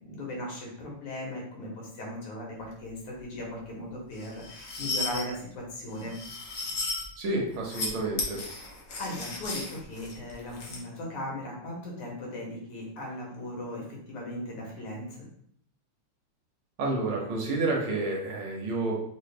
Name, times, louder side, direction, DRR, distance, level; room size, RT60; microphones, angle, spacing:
voice 1, 0.0-6.1 9.0-15.2, left 1 dB, 85° left, -2 dB, 2.2 m, -38 dB
Scratching metal on porcelain, 4.2-5.2 6.0-7.1 7.5-7.9 8.2-10.8, left 3 dB, 60° left, 0.8 m, -35 dB
voice 2, 7.2-8.4 16.8-19.0, right 2 dB, 75° right, -1 dB, 1.8 m, -29 dB
4.6 x 2.6 x 3.3 m, 0.68 s
omnidirectional pair, 2.4 m